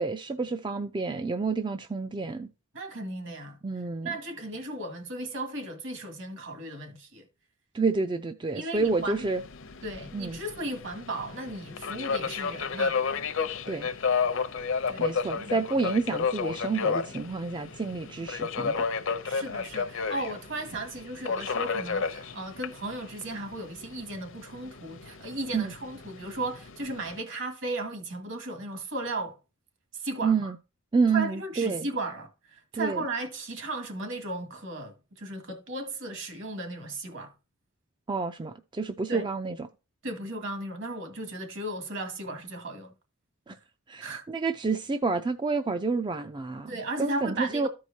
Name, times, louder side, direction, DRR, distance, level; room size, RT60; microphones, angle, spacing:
voice 1, 0.0-2.5 3.6-4.1 7.7-9.4 10.1-10.4 13.7-13.9 15.0-18.9 25.5-25.7 30.2-30.6 30.9-31.9 32.7-33.0 38.1-39.7 43.5-43.6 43.9-46.7 47.0-47.7, right 4 dB, 20° right, 0.4 m, -29 dB
voice 2, 2.7-3.6 4.0-7.3 8.5-9.3 9.8-13.0 14.9-15.6 19.2-29.4 29.9-30.5 31.1-37.3 39.1-39.3 40.0-42.9 44.0-44.2 46.7-47.7, right 2 dB, 60° right, 2.0 m, -36 dB
Subway metro underground, 8.8-27.2, left 5 dB, 60° left, 0.7 m, -32 dB
14.0 x 4.7 x 2.7 m
head